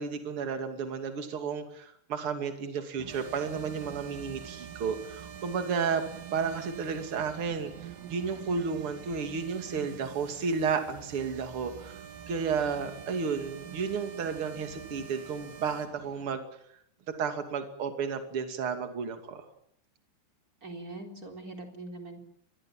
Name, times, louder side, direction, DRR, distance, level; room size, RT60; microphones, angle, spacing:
voice 1, 0.0-6.0 6.3-7.7 8.1-12.0 12.3-16.4 17.2-19.4, right 5 dB, 35° right, 6 dB, 2.6 m, -32 dB
sound 1, 3.0-16.4, right 10 dB, 85° right, 4.2 m, -48 dB
sound 2, 3.1-15.9, right 6 dB, 65° right, 4.8 m, -49 dB
voice 2, 20.6-22.2, right 2 dB, 20° right, 3 dB, 3.5 m, -42 dB
25.0 x 21.0 x 7.5 m, 0.70 s
omnidirectional pair, 5.7 m